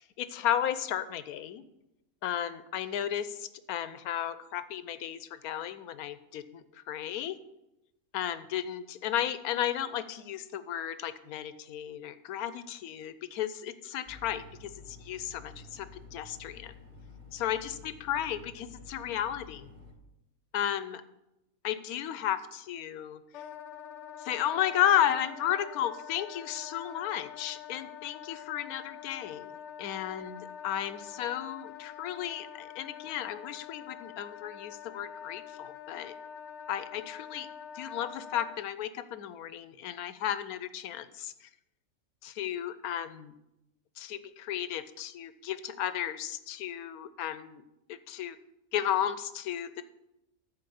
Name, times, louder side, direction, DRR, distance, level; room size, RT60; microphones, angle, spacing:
voice 1, 0.0-1.6 2.2-7.4 8.1-16.7 17.3-19.7 20.5-21.0 21.6-23.2 24.2-29.5 29.8-36.1 36.7-37.5 37.7-41.3 42.2-43.3 44.0-47.6 47.9-48.4 48.7-49.8, left 10 dB, 80° left, 13 dB, 1.1 m, -34 dB
sound 1, 14.1-19.9, left 4 dB, 50° right, 2.3 m, -51 dB
Wind instrument woodwind instrument, 23.3-38.6, left 8 dB, 65° left, 0.8 m, -46 dB
13.5 x 4.7 x 6.9 m, 0.89 s
omnidirectional pair, 1.6 m